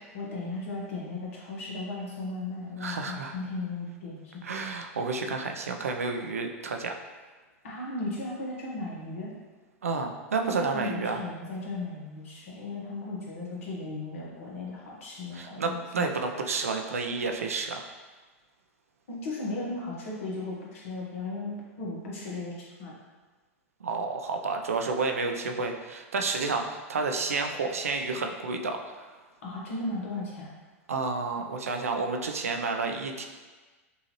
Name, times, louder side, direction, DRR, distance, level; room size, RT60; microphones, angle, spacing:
voice 1, 0.1-4.4 7.6-9.3 10.6-16.1 19.1-22.5 22.8-22.9 29.4-30.5, left 2 dB, 70° left, -4 dB, 1.4 m, -36 dB
voice 2, 2.8-3.3 4.4-6.9 9.8-11.2 15.3-17.8 23.8-29.1 30.9-33.2, right 4 dB, 90° right, 4 dB, 0.5 m, -30 dB
5.4 x 2.8 x 2.9 m, 1.3 s
hypercardioid pair, 100°, 8 cm